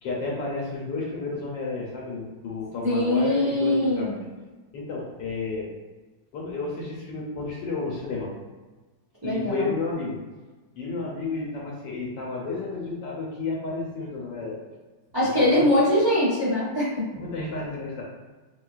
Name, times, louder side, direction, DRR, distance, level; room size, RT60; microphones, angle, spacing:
voice 1, 0.0-4.2 4.7-5.7 6.3-8.3 9.2-10.2 10.8-14.6 15.2-15.6 17.2-18.0, left 3 dB, 75° left, -3 dB, 1.3 m, -32 dB
voice 2, 2.8-4.2 9.2-9.7 15.1-17.0, left 1 dB, 20° right, -10 dB, 0.7 m, -22 dB
4.2 x 2.2 x 2.4 m, 1.3 s
omnidirectional pair, 2.0 m